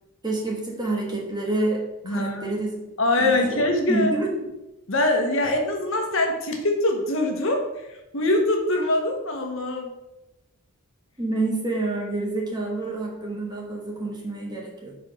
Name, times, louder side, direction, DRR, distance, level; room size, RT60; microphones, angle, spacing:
voice 1, 0.2-2.8 3.2-4.5 11.2-14.9, right 2 dB, 20° right, -2 dB, 1.3 m, -28 dB
voice 2, 2.0-2.5 3.0-4.1 4.9-9.9, left 1 dB, 60° left, 2 dB, 1.2 m, -23 dB
6.0 x 4.4 x 5.6 m, 0.92 s
head